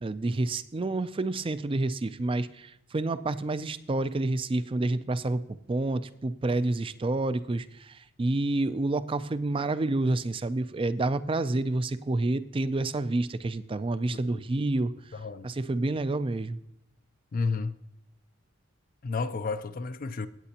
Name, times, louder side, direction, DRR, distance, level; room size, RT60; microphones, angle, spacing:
voice 1, 0.0-14.9 15.4-16.6, right 2 dB, 25° right, 0.4 m, -29 dB
voice 2, 14.1-14.4 15.1-15.5 17.3-17.7 19.0-20.3, left 4 dB, 40° left, 0.4 m, -31 dB
16.5 x 8.7 x 2.9 m
head